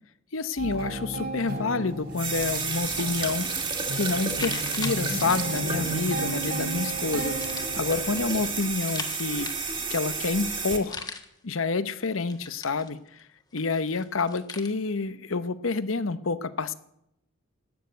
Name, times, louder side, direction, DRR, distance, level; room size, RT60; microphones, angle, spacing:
voice 1, 0.3-3.5 3.9-7.4 7.8-9.5 9.9-11.1 11.4-13.0 13.5-16.7, left 4 dB, 75° left, 15 dB, 0.9 m, -28 dB
sound 1, 0.6-8.7, right 2 dB, 55° right, 4.0 m, -35 dB
sound 2, 2.1-10.8, right 4 dB, 25° right, 2.2 m, -31 dB
sound 3, 4.2-6.5 7.3-9.9 10.2-10.3 10.5-11.5 12.0-13.2 13.6-14.7, left 4 dB, 20° left, 1.5 m, -41 dB
13.0 x 9.3 x 9.3 m, 0.78 s
head